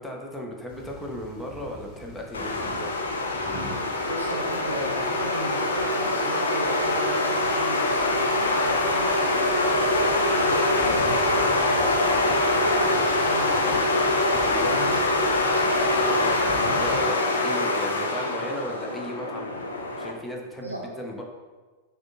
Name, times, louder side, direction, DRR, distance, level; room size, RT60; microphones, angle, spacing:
voice 1, 0.0-3.0 14.4-14.7 16.2-19.6 19.9-21.2, left 1 dB, 5° left, 0 dB, 0.6 m, -36 dB
sound 1, 0.7-17.1, left 2 dB, 40° left, 0.8 m, -42 dB
sound 2, 2.3-20.1, left 2 dB, 70° left, 0.4 m, -24 dB
voice 2, 4.1-9.1 9.5-14.0 14.6-15.0 15.8-16.8 20.6-20.8, right 1 dB, 85° right, -1 dB, 0.6 m, -36 dB
6.1 x 2.2 x 2.6 m, 1.3 s
figure-of-eight pair, 90°, 0 cm